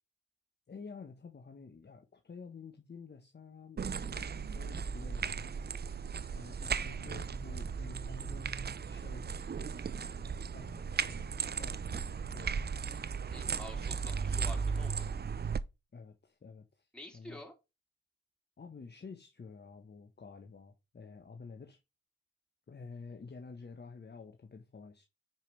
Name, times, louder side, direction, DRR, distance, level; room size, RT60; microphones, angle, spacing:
voice 1, 0.7-5.5 6.3-8.5 8.8-9.4 10.5-12.9 15.9-16.9 17.1-17.4 18.6-21.8 22.7-25.0, left 4 dB, 35° left, 1.3 m, -50 dB
sound 1, 3.8-15.6, right 6 dB, 35° right, 0.7 m, -36 dB
voice 2, 13.3-15.0 16.9-17.5, left 1 dB, 5° left, 4.4 m, -49 dB
9.1 x 5.4 x 3.4 m
hypercardioid pair, 40°, 30 cm